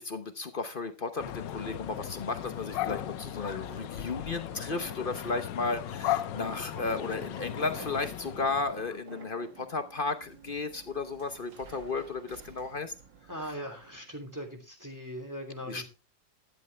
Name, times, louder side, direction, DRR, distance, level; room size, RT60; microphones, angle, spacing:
voice 1, 0.0-12.9 13.4-13.6 15.7-15.9, left 3 dB, 45° left, 0.7 m, -34 dB
sound 1, 1.2-9.0, left 12 dB, 75° left, 1.4 m, -37 dB
sound 2, 2.7-9.6, right 3 dB, 55° right, 2.6 m, -51 dB
sound 3, 8.8-14.3, right 7 dB, 70° right, 2.2 m, -55 dB
voice 2, 13.3-15.9, equal, 10° right, 3.0 m, -40 dB
12.5 x 11.0 x 3.4 m
omnidirectional pair, 2.1 m